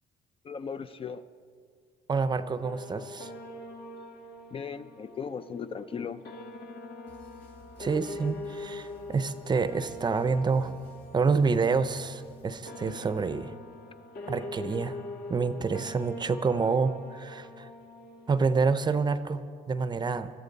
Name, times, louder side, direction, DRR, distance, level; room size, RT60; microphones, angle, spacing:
voice 1, 0.4-1.2 4.5-6.2, left 6 dB, 35° left, 11 dB, 0.5 m, -37 dB
voice 2, 2.1-3.3 7.8-10.8 11.1-13.5 14.3-15.0 15.3-17.7 18.3-20.3, right 4 dB, 25° right, 13 dB, 0.6 m, -28 dB
sound 1, 2.6-19.0, left 1 dB, 65° left, 1.7 m, -43 dB
sound 2, 7.1-12.6, left 2 dB, 80° left, 5.1 m, -55 dB
22.5 x 13.5 x 4.0 m, 2.2 s
cardioid pair, 110°, 17 cm